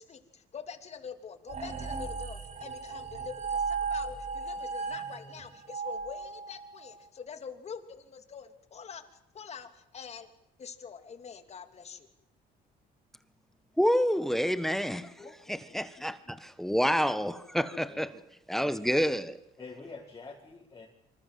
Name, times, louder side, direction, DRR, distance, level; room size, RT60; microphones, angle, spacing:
voice 1, 0.0-9.0 9.3-10.3 10.6-12.1, left 6 dB, 40° left, 2.9 m, -45 dB
sound 1, 1.5-6.9, right 5 dB, 45° right, 5.9 m, -36 dB
voice 2, 13.8-15.1 15.5-18.1 18.5-19.4, equal, ahead, 1.4 m, -28 dB
voice 3, 15.0-16.1 17.8-18.1 19.6-20.9, left 3 dB, 20° left, 5.2 m, -48 dB
27.5 x 25.5 x 7.7 m
cardioid pair, 110°, 17 cm